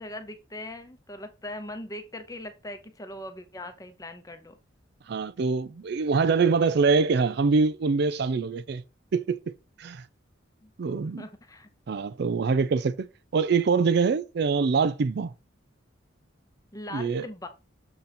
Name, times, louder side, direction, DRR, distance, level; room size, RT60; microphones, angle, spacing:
voice 1, 0.0-4.6 10.6-10.7 11.2-11.7 16.7-17.5, left 1 dB, 20° left, 0.8 m, -40 dB
voice 2, 5.1-8.8 9.1-9.4 9.8-10.0 10.8-11.2 11.9-13.1 13.3-15.3 16.9-17.2, right 4 dB, 55° right, 0.4 m, -24 dB
7.0 x 3.9 x 4.2 m
head